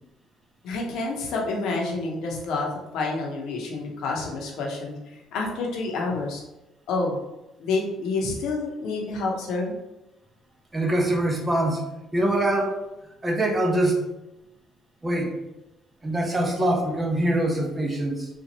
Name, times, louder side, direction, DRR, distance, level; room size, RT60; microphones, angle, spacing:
voice 1, 0.6-5.0 5.3-6.4 6.9-7.2 7.6-9.7, left 3 dB, 70° left, -1 dB, 0.9 m, -28 dB
voice 2, 10.7-11.8 12.1-12.8 13.2-14.0 15.0-15.3 16.0-18.3, right 1 dB, 25° right, 1 dB, 0.8 m, -23 dB
4.0 x 2.5 x 2.9 m, 0.96 s
supercardioid pair, 70°, 0 cm